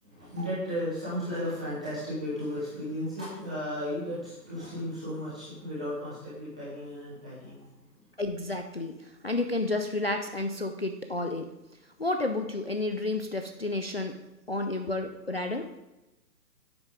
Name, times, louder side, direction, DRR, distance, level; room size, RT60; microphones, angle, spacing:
voice 1, 0.0-8.1, equal, 5° right, -11 dB, 0.8 m, -35 dB
voice 2, 8.2-9.0 9.2-11.5 12.0-14.2 14.5-15.7, left 2 dB, 40° left, 5 dB, 0.5 m, -31 dB
10.0 x 8.3 x 5.1 m, 0.99 s
hypercardioid pair, 165°, 50 cm